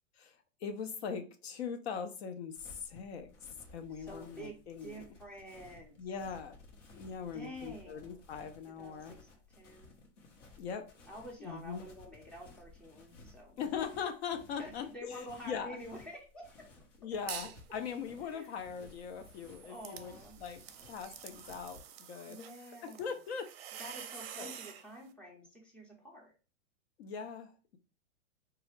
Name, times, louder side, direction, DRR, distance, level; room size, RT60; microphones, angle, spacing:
voice 1, 0.2-5.0 6.0-6.6 6.9-9.1 10.6-10.9 11.4-11.8 13.6-15.8 17.0-20.6 20.9-22.4 22.8-23.8 24.4-24.5 27.0-27.8, left 6 dB, 60° left, 0.5 m, -41 dB
sound 1, 2.5-21.8, left 3 dB, 75° left, 1.0 m, -58 dB
voice 2, 3.9-6.0 7.3-8.3 8.7-9.9 11.1-13.6 14.6-16.7 18.3-18.6 19.6-20.4 22.3-23.1 23.8-26.3, equal, 5° left, 0.4 m, -49 dB
sound 2, 17.1-17.6 18.0-24.9, right 10 dB, 55° right, 0.5 m, -48 dB
3.1 x 2.4 x 3.0 m
hypercardioid pair, 140°, 36 cm